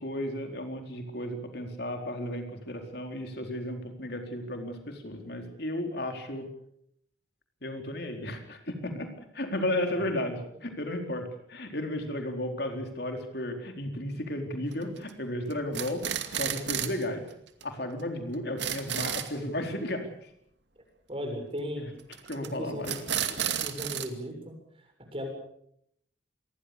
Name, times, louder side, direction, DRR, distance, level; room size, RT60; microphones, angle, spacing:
voice 1, 0.0-6.5 7.6-17.2 17.6-20.3 22.3-23.0, left 1 dB, 55° left, 4 dB, 4.2 m, -34 dB
sound 1, 14.7-15.1 15.5-17.0 17.3-17.4 17.6-17.7 18.0-18.1 18.3-19.3 22.1-22.5 22.8-24.1, right 9 dB, 65° right, 2.4 m, -32 dB
voice 2, 21.1-21.9 22.4-22.9 23.2-24.5 25.1-25.3, equal, 30° right, 4 dB, 7.4 m, -36 dB
27.0 x 21.5 x 6.8 m, 0.71 s
head